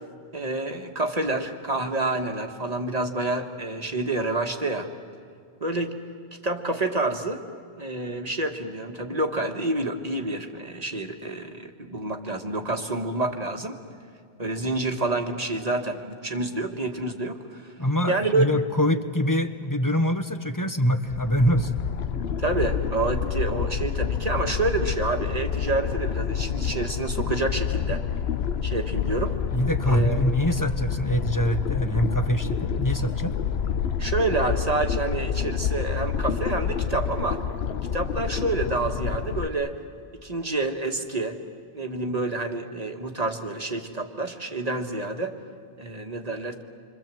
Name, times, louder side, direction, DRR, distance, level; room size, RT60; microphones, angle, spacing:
voice 1, 0.3-4.9 5.6-6.0 6.4-7.4 7.8-13.8 14.4-17.7 18.1-18.4 22.4-28.0 28.6-29.4 29.8-30.2 34.0-37.4 37.9-39.7 40.2-41.4 41.7-45.3 45.8-46.6, right 2 dB, 40° right, 4 dB, 1.6 m, -28 dB
voice 2, 17.8-21.7 29.5-33.4, equal, 20° left, 8 dB, 1.0 m, -24 dB
sound 1, 21.1-39.5, left 7 dB, 80° left, 1.1 m, -28 dB
27.0 x 25.0 x 7.6 m, 2.2 s
omnidirectional pair, 1.0 m